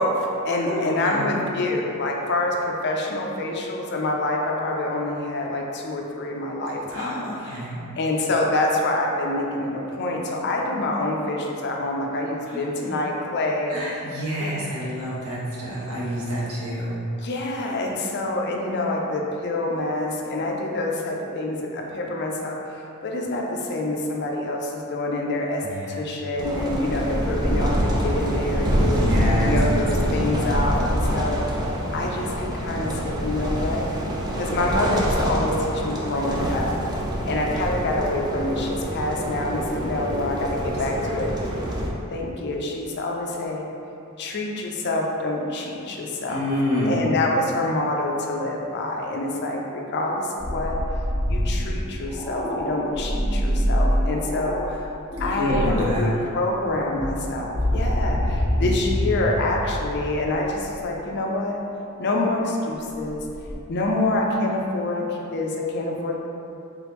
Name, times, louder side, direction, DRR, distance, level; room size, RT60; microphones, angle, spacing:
voice 1, 0.0-7.5 7.9-13.8 14.4-14.6 17.2-22.6 23.0-25.6 25.9-29.0 29.4-31.6 31.9-33.8 34.4-36.7 37.2-41.3 42.1-43.7 44.2-46.4 46.8-50.8 51.3-54.9 55.2-61.6 62.0-63.2 63.7-66.3, left 2 dB, 50° left, -1 dB, 0.5 m, -26 dB
voice 2, 0.6-1.4 6.9-7.8 12.5-13.0 13.7-17.0 25.6-26.0 28.9-29.6 40.6-40.7 41.0-41.2 46.3-47.1 55.4-56.1 58.5-59.1, equal, 80° right, -8 dB, 1.2 m, -28 dB
sound 1, 26.4-41.9, equal, 20° right, 0.4 m, -25 dB
sound 2, 50.4-54.6 55.1-56.0 56.7-60.8 63.1-63.6, equal, 15° left, 1.3 m, -25 dB
3.6 x 3.4 x 3.0 m, 2.7 s
head